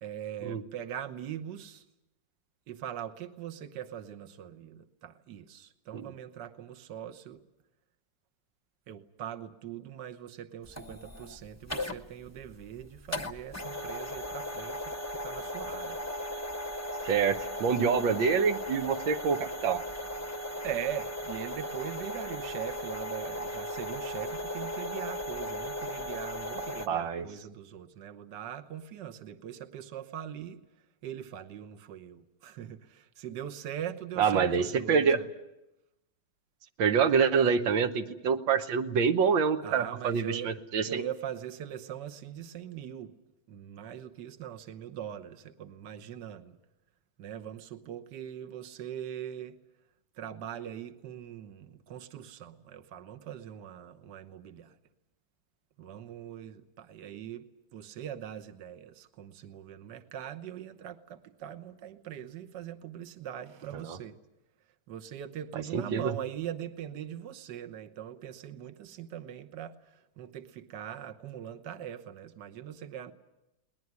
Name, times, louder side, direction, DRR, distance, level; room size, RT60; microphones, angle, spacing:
voice 1, 0.0-1.8 2.7-7.4 8.9-16.0 20.6-30.6 31.0-35.3 39.6-40.5 40.8-43.1 43.5-46.6 47.2-49.6 50.2-54.7 55.8-64.2 64.9-73.1, right 10 dB, 70° right, 1.6 m, -41 dB
sound 1, 10.7-26.9, left 1 dB, 15° left, 0.6 m, -37 dB
voice 2, 17.0-19.8 26.9-27.3 34.2-35.2 36.8-41.0 63.7-64.0 65.7-66.1, right 6 dB, 85° right, 1.8 m, -26 dB
21.5 x 19.5 x 9.5 m
omnidirectional pair, 2.0 m